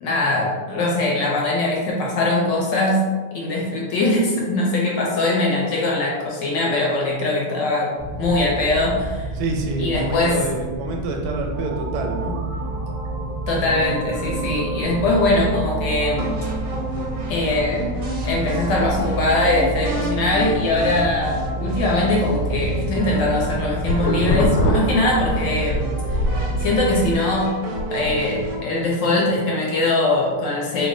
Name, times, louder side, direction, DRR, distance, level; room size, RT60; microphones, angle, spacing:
voice 1, 0.0-3.1 3.3-7.9 8.2-9.3 9.8-10.4 13.5-16.4 17.3-17.9 18.2-25.9 26.6-27.5 27.9-30.9, left 2 dB, 70° left, -3 dB, 1.3 m, -21 dB
sound 1, 8.0-27.2, right 2 dB, 25° right, 0.5 m, -29 dB
voice 2, 9.3-12.4, right 2 dB, 85° right, 2 dB, 1.5 m, -27 dB
sound 2, 11.5-28.6, right 1 dB, 65° right, 0.8 m, -32 dB
sound 3, 23.4-25.8 26.1-28.5, left 1 dB, 85° left, 1.4 m, -24 dB
3.4 x 2.1 x 3.7 m, 1.4 s
omnidirectional pair, 2.3 m